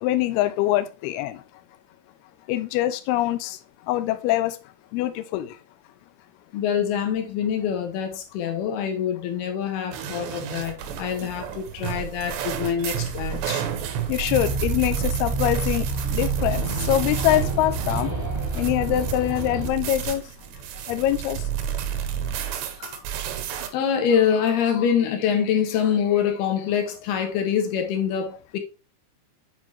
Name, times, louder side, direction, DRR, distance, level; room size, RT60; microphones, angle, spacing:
voice 1, 0.0-1.4 2.5-3.6 3.9-4.6 4.9-5.5 14.1-18.1 18.6-20.2 20.9-21.4, left 14 dB, 85° left, 2.3 m, -24 dB
voice 2, 6.5-13.6 22.8-23.0 23.7-28.6, left 8 dB, 70° left, 3.1 m, -25 dB
sound 1, 9.9-23.7, right 8 dB, 80° right, 3.1 m, -31 dB
sound 2, 14.3-19.7, right 4 dB, 15° right, 1.9 m, -28 dB
8.3 x 5.4 x 3.0 m
omnidirectional pair, 5.1 m